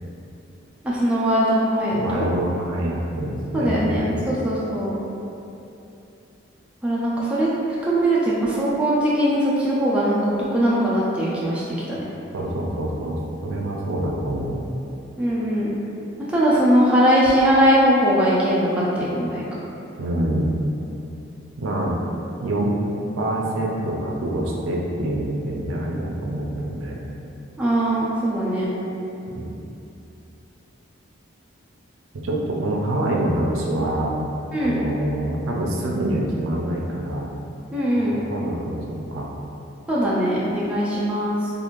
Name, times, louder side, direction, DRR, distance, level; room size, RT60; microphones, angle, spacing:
voice 1, 0.8-2.3 3.5-4.9 6.8-7.5 7.8-11.6 11.9-12.0 15.2-15.7 16.3-19.4 27.6-28.7 34.5-34.8 37.7-38.1 39.9-41.5, equal, 5° right, -8 dB, 0.3 m, -20 dB
voice 2, 1.9-4.2 12.3-14.6 20.0-20.5 21.6-22.0 22.4-22.7 23.1-27.0 29.3-29.5 32.2-34.2 34.6-37.3 38.3-38.8 39.1-39.3, right 1 dB, 85° right, -2 dB, 0.4 m, -25 dB
2.5 x 2.4 x 3.0 m, 2.9 s
head